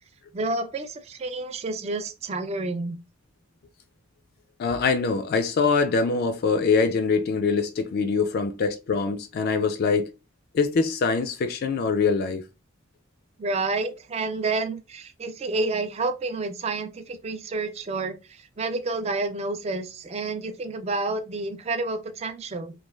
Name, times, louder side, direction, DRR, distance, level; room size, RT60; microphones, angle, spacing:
voice 1, 0.3-3.0 13.4-22.7, right 3 dB, 30° right, 0.4 m, -29 dB
voice 2, 4.6-10.1 10.5-12.4, left 4 dB, 50° left, 0.3 m, -23 dB
3.0 x 2.2 x 2.2 m
head